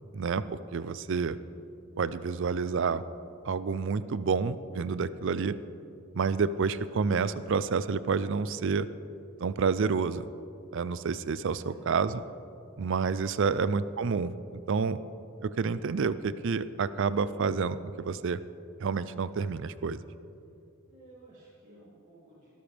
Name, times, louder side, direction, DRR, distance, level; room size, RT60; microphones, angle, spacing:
voice 1, 0.1-1.4 2.0-3.0 3.4-5.6 6.1-8.9 9.4-10.3 10.7-12.2 12.8-15.0 15.4-18.4 18.8-20.0, right 5 dB, 55° right, 15 dB, 0.4 m, -29 dB
voice 2, 11.5-12.1 20.9-22.5, right 1 dB, 35° right, -8 dB, 2.7 m, -54 dB
19.0 x 13.5 x 3.4 m, 2.8 s
head